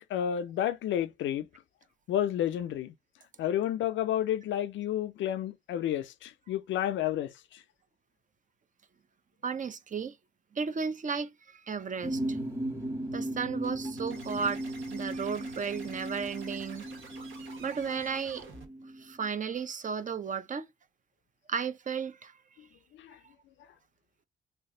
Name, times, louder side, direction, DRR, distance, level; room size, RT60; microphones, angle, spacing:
voice 1, 0.1-1.5 2.1-2.9 3.4-7.6 23.0-23.2, left 11 dB, 70° left, 0.4 m, -31 dB
voice 2, 9.4-10.2 10.5-12.4 13.1-14.6 14.9-16.9 17.6-18.5 19.0-20.6 21.5-22.3, right 6 dB, 40° right, 0.6 m, -34 dB
sound 1, 12.0-19.3, right 1 dB, 15° right, 1.3 m, -37 dB
sound 2, 13.6-18.7, right 3 dB, 70° right, 1.1 m, -49 dB
3.3 x 2.0 x 3.7 m
supercardioid pair, 50°, 20 cm